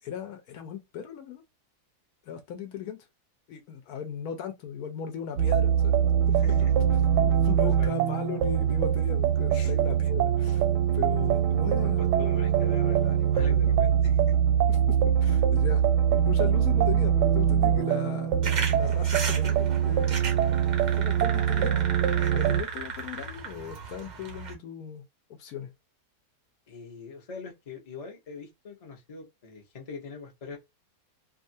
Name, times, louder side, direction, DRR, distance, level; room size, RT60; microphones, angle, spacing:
voice 1, 0.0-1.4 2.3-3.1 3.5-6.6 6.9-10.7 10.9-12.0 14.7-15.8 16.1-20.2 21.0-21.9 22.3-25.0 25.4-25.7, left 8 dB, 70° left, 1.1 m, -37 dB
sound 1, 5.4-22.6, right 9 dB, 90° right, 1.2 m, -23 dB
voice 2, 6.4-6.7 7.6-8.0 9.5-9.7 11.8-14.4 26.7-30.6, left 4 dB, 35° left, 0.5 m, -42 dB
sound 2, 18.4-24.5, right 5 dB, 60° right, 0.4 m, -36 dB
2.7 x 2.4 x 2.6 m
omnidirectional pair, 1.8 m